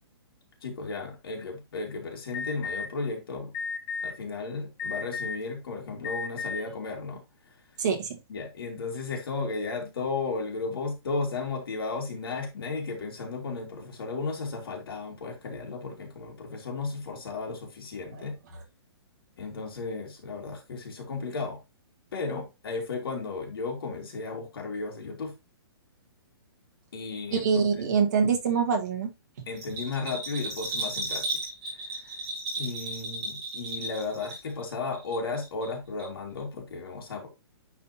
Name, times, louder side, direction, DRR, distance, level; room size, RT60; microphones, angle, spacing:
voice 1, 0.6-3.5 4.0-7.6 8.3-18.4 19.4-21.6 22.1-25.3 26.9-27.6 29.5-31.3 31.7-32.2 32.6-37.3, left 4 dB, 60° left, 2.3 m, -34 dB
Alarm, 2.3-2.9 3.5-4.1 4.8-5.4 6.0-6.6, left 5 dB, 15° left, 1.2 m, -33 dB
voice 2, 7.8-8.2 27.3-29.1, right 6 dB, 40° right, 1.6 m, -24 dB
Bell, 29.5-34.6 34.9-35.7 36.0-36.1, right 2 dB, 20° right, 3.2 m, -34 dB
10.0 x 4.2 x 2.8 m
hypercardioid pair, 175°, 14 cm